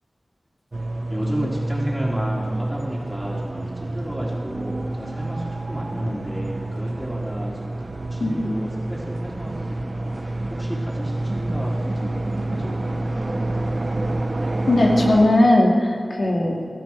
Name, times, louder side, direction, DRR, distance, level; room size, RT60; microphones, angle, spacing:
sound 1, 0.7-15.3, right 2 dB, 50° right, 1.1 m, -28 dB
voice 1, 1.1-13.3, equal, ahead, -4 dB, 3.7 m, -32 dB
voice 2, 14.7-16.7, left 1 dB, 70° left, -1 dB, 2.4 m, -18 dB
17.5 x 13.0 x 4.7 m, 2.2 s
wide cardioid pair, 60°, 0 cm